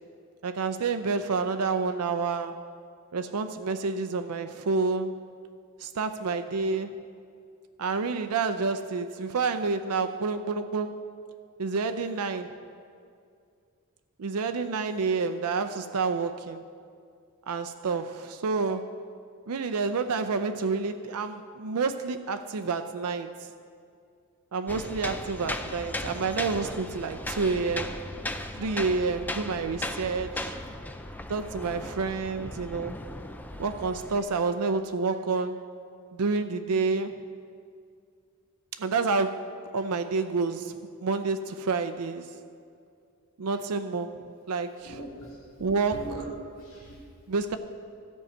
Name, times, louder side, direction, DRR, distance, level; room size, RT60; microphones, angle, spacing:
voice 1, 0.4-2.6 3.1-5.1 5.8-7.0 7.8-10.9 11.6-12.5 14.2-16.6 17.5-18.9 19.5-23.3 24.5-28.0 28.5-30.5 31.3-33.0 33.6-35.6 36.1-37.2 38.8-39.4 39.7-42.3 43.4-45.0 45.6-46.0 47.3-47.6, right 4 dB, 90° right, 9 dB, 0.5 m, -29 dB
sound 1, 24.7-34.2, left 1 dB, 10° left, 0.3 m, -37 dB
voice 2, 44.8-46.2 46.6-47.0, equal, 90° left, -6 dB, 1.5 m, -41 dB
13.0 x 5.5 x 7.8 m, 2.3 s
head